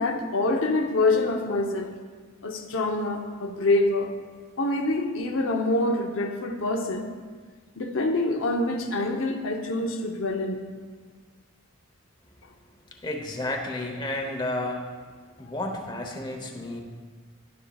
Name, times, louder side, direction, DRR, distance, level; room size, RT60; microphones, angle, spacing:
voice 1, 0.0-1.9 2.4-4.1 4.6-7.1 7.8-10.6, left 2 dB, 85° left, 3 dB, 0.8 m, -26 dB
voice 2, 13.0-14.9 15.4-16.8, left 1 dB, 20° left, 2 dB, 0.9 m, -31 dB
11.0 x 10.0 x 2.4 m, 1.5 s
head